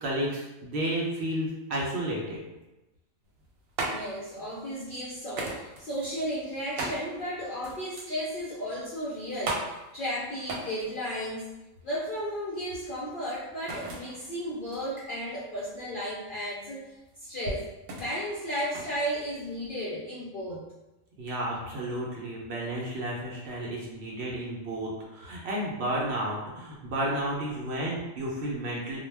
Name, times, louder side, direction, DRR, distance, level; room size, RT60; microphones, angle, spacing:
voice 1, 0.0-2.4 21.2-29.0, right 1 dB, 65° right, -3 dB, 0.8 m, -32 dB
sound 1, 3.2-19.8, right 2 dB, 85° right, 1.0 m, -39 dB
voice 2, 3.8-11.5 11.8-17.7 18.0-20.7, equal, 60° left, -7 dB, 0.5 m, -34 dB
2.2 x 2.1 x 3.2 m, 1.0 s
omnidirectional pair, 1.4 m